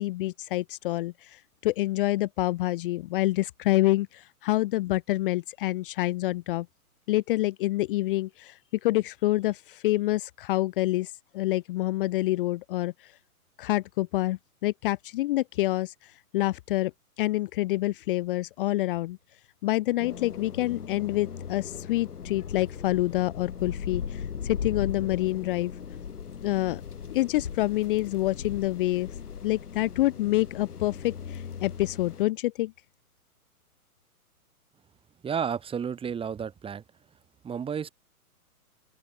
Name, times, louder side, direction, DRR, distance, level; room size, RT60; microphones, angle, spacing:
voice 1, 0.0-6.7 7.1-13.1 13.6-16.9 17.2-19.2 19.6-25.7 26.4-26.8 27.1-29.1 29.4-32.7, left 17 dB, 35° left, 1.0 m, -27 dB
sound 1, 20.0-32.2, left 7 dB, 80° left, 6.2 m, -38 dB
voice 2, 35.2-36.8 37.4-37.9, right 7 dB, 10° right, 3.6 m, -31 dB
open air
hypercardioid pair, 140°, 45 cm